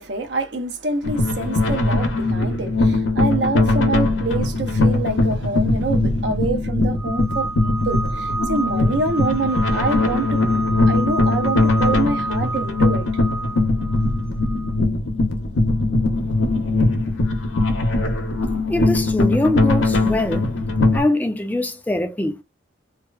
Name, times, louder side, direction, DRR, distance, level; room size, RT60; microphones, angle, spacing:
voice 1, 0.0-10.4 10.9-13.1, right 3 dB, 65° right, 0.6 m, -26 dB
sound 1, 1.0-21.0, left 2 dB, 85° left, 0.6 m, -20 dB
sound 2, 7.0-14.7, right 3 dB, 30° right, 1.0 m, -30 dB
voice 2, 18.7-20.5 20.9-22.4, left 1 dB, 10° left, 0.3 m, -22 dB
2.7 x 2.0 x 2.3 m
head